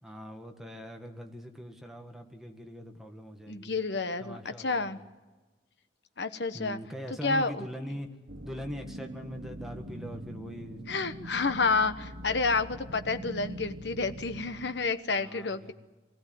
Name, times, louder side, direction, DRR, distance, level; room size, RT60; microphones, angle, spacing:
voice 1, 0.0-3.7 4.2-5.0 6.5-8.1 8.4-10.8 15.1-15.7, equal, ahead, 3 dB, 1.8 m, -42 dB
voice 2, 3.5-5.0 6.2-6.8 7.2-7.7 10.9-15.7, left 4 dB, 65° left, 10 dB, 1.1 m, -29 dB
sound 1, 8.3-14.9, right 1 dB, 75° right, 1.2 m, -43 dB
24.0 x 16.0 x 9.4 m, 1.2 s
head